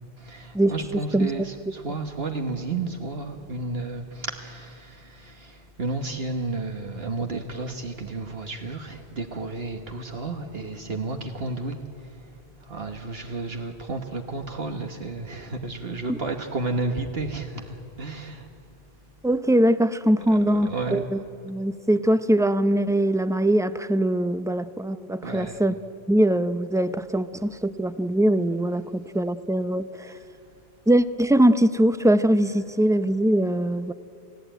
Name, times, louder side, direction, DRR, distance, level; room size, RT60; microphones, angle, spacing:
voice 1, 0.2-18.5 20.3-21.1 25.2-25.6 30.1-30.5, right 3 dB, 65° right, 4 dB, 1.5 m, -32 dB
voice 2, 19.2-21.2 21.5-25.7 26.1-30.2 30.9-33.9, right 1 dB, 5° right, 12 dB, 0.4 m, -22 dB
29.0 x 17.0 x 9.2 m, 2.6 s
omnidirectional pair, 1.1 m